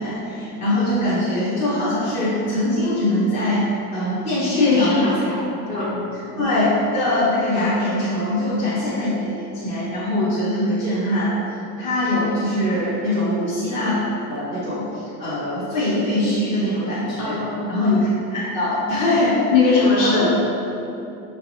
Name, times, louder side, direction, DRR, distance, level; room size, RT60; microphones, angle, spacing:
voice 1, 0.0-5.1 5.7-11.4 11.8-14.0 14.3-17.4 17.7-19.4 19.7-20.3, left 1 dB, 15° left, -11 dB, 0.5 m, -22 dB
voice 2, 4.6-6.0 17.2-17.7 19.5-20.3, left 4 dB, 40° left, -5 dB, 1.1 m, -20 dB
5.9 x 3.3 x 2.5 m, 2.9 s
supercardioid pair, 160°, 48 cm